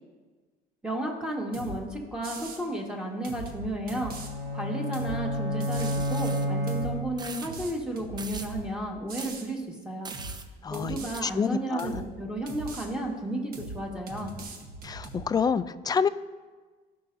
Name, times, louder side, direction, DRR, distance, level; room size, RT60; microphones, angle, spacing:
voice 1, 0.8-4.1 4.5-10.1 10.7-14.3, right 1 dB, 5° right, -1 dB, 1.7 m, -33 dB
sound 1, 1.5-1.8 2.2-2.6 3.2-4.3 4.9-5.2 5.6-6.1 6.7-6.9 7.4-8.7 9.1-9.5 10.1-10.4 10.7-11.2 11.8-12.1 12.5-12.9 13.5-13.8 14.1-15.2, right 3 dB, 60° right, 1.3 m, -40 dB
sound 2, 3.9-7.4, equal, 80° right, 3.0 m, -30 dB
sound 3, 5.7-6.5 7.2-7.5 8.2-8.5 9.2-9.4 10.0-10.5 11.1-11.2, right 4 dB, 25° right, 0.6 m, -41 dB
voice 2, 10.6-12.0 14.8-16.1, left 6 dB, 25° left, 13 dB, 0.4 m, -28 dB
16.0 x 5.5 x 2.7 m, 1.3 s
cardioid pair, 110°, 17 cm